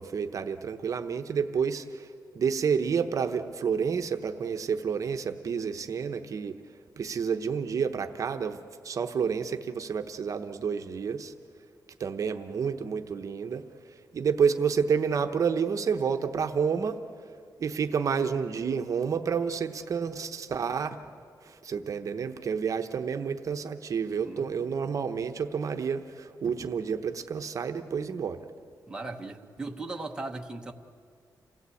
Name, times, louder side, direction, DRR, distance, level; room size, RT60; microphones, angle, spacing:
voice 1, 0.0-6.6 7.0-11.3 12.0-13.7 14.1-17.0 17.6-21.0 21.4-28.4, right 6 dB, 50° right, 7 dB, 0.9 m, -29 dB
voice 2, 28.9-30.7, right 2 dB, 10° right, 2 dB, 1.0 m, -38 dB
28.0 x 17.0 x 8.4 m, 2.2 s
wide cardioid pair, 170°, 7 cm